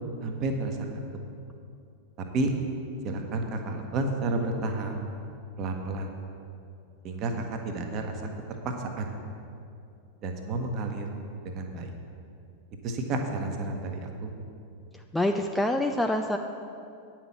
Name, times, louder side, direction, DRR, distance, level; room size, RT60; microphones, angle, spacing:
voice 1, 0.2-1.0 2.3-2.5 3.0-4.9 5.6-6.1 7.0-8.1 9.0-9.1 10.2-11.1 11.4-11.9 12.8-14.3, right 2 dB, 35° right, 4 dB, 1.1 m, -31 dB
voice 2, 14.9-16.4, left 1 dB, 5° left, 4 dB, 0.4 m, -26 dB
9.4 x 5.9 x 7.2 m, 2.5 s
figure-of-eight pair, 90°, 0 cm